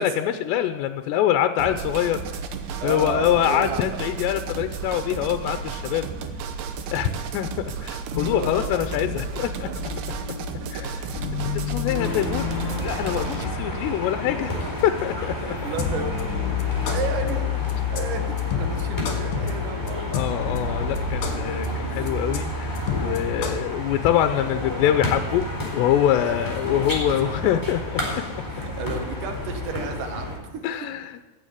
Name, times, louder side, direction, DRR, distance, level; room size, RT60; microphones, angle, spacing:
voice 1, 0.0-2.4 2.8-6.1 6.9-9.7 10.7-10.9 11.4-14.5 14.8-15.4 20.1-25.4 25.7-28.0 30.6-31.3, left 11 dB, 85° left, 9 dB, 2.8 m, -24 dB
sound 1, 1.6-13.5, right 5 dB, 75° right, 2.9 m, -33 dB
voice 2, 2.8-4.0 8.1-8.5 10.6-10.9 11.6-11.9 13.7-13.8 14.2-14.7 15.4-17.5 17.9-20.2 21.8-22.1 26.2-26.5 26.8-27.6 28.5-30.6 30.9-31.0, right 5 dB, 60° right, 5 dB, 2.6 m, -34 dB
sound 2, 8.1-23.6, left 6 dB, 55° left, 3.1 m, -30 dB
sound 3, 12.0-30.4, left 1 dB, 5° left, 3.6 m, -31 dB
15.0 x 7.3 x 9.0 m, 1.2 s
omnidirectional pair, 5.0 m